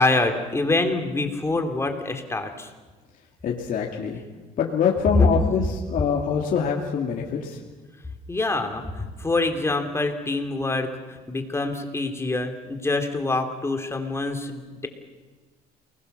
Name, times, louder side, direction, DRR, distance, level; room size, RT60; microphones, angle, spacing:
voice 1, 0.0-2.7 5.1-5.3 8.3-14.9, left 3 dB, 15° left, 5 dB, 3.0 m, -25 dB
voice 2, 3.4-4.2 4.6-7.6, left 7 dB, 55° left, -1 dB, 2.7 m, -24 dB
28.5 x 21.0 x 6.9 m, 1.3 s
cardioid pair, 110°, 17 cm